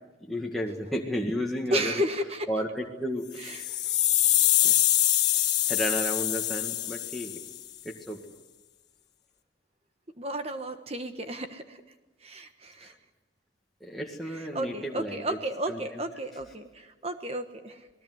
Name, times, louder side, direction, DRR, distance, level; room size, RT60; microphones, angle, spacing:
voice 1, 0.3-2.0 2.5-3.9 4.6-4.8 5.7-7.4 7.8-8.2 12.8-12.9 13.8-15.4 15.7-16.0, equal, ahead, -2 dB, 2.0 m, -33 dB
voice 2, 1.7-2.5 3.4-3.6 10.2-11.8 12.2-12.9 14.5-17.8, right 1 dB, 30° right, 7 dB, 1.3 m, -32 dB
sound 1, 3.4-7.6, left 13 dB, 60° left, 1.6 m, -24 dB
27.0 x 20.0 x 8.0 m, 1.2 s
head